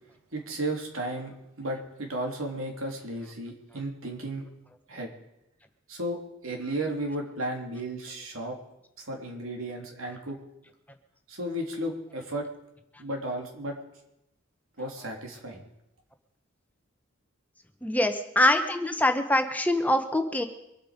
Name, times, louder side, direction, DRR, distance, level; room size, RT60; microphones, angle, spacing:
voice 1, 0.3-4.5 4.9-5.1 5.9-8.6 9.0-10.4 11.3-12.5 13.0-13.8 14.8-15.6, right 1 dB, 85° right, 2 dB, 3.3 m, -34 dB
voice 2, 17.8-20.5, left 1 dB, 10° left, 6 dB, 0.9 m, -24 dB
24.0 x 8.6 x 5.2 m, 0.86 s
head